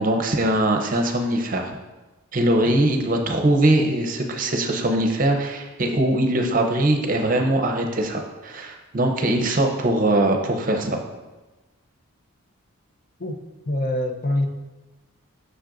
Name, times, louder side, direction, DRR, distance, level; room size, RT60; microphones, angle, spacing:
voice 1, 0.0-1.8 2.3-11.0, right 1 dB, 40° right, 3 dB, 0.6 m, -21 dB
voice 2, 13.7-14.5, left 1 dB, 40° left, 5 dB, 0.5 m, -24 dB
7.5 x 6.4 x 2.5 m, 1.1 s
head